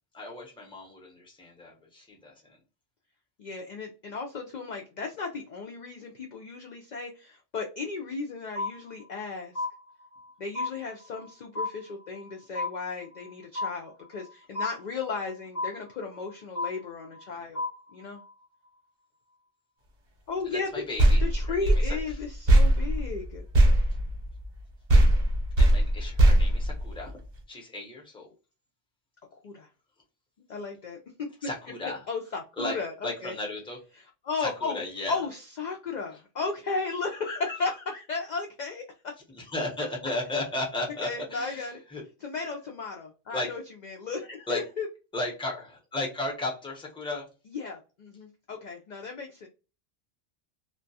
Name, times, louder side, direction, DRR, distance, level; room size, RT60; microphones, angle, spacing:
voice 1, 0.1-2.6 20.5-22.0 25.6-27.2 27.5-28.3 31.4-32.0 32.6-32.7 33.0-33.8 34.4-35.2 39.3-42.0 43.3-43.5 44.5-44.6 45.1-47.3, left 2 dB, 5° left, -1 dB, 0.6 m, -35 dB
voice 2, 3.4-9.7 10.4-17.6 17.9-18.2 20.3-20.8 21.2-23.4 29.3-29.7 30.5-31.3 32.1-33.4 34.0-34.8 35.1-39.1 41.0-41.8 42.2-44.9 47.5-49.5, left 4 dB, 65° left, 1 dB, 0.4 m, -35 dB
sound 1, 8.6-9.3 9.6-10.3 10.6-11.3 11.6-12.3 12.6-13.3 13.6-14.3 14.6-15.3 15.6-16.3 16.6-17.3 17.6-18.3, left 3 dB, 35° left, 0.8 m, -33 dB
sound 2, 21.0-24.6 24.9-27.4, right 1 dB, 50° right, 0.7 m, -21 dB
2.3 x 2.2 x 2.6 m, 0.32 s
omnidirectional pair, 1.2 m